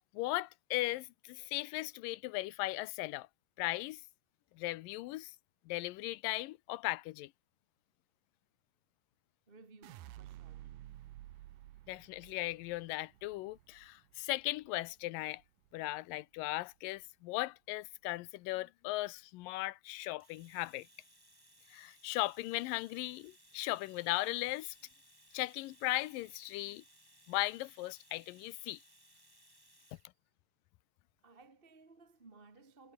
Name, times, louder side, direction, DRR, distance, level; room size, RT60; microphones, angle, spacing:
voice 1, 0.1-3.3 3.6-4.0 4.6-5.3 5.7-7.3 11.9-15.4 15.7-20.9 21.7-24.8 25.3-26.8 27.3-28.8, left 18 dB, 85° left, 2.4 m, -37 dB
voice 2, 9.5-10.7 31.2-32.9, right 3 dB, 20° right, 1.7 m, -59 dB
sound 1, 9.8-16.0 16.4-17.0, right 14 dB, 85° right, 2.8 m, -54 dB
Domestic sounds home sounds, 20.2-30.1, equal, 5° right, 7.0 m, -64 dB
omnidirectional pair, 3.9 m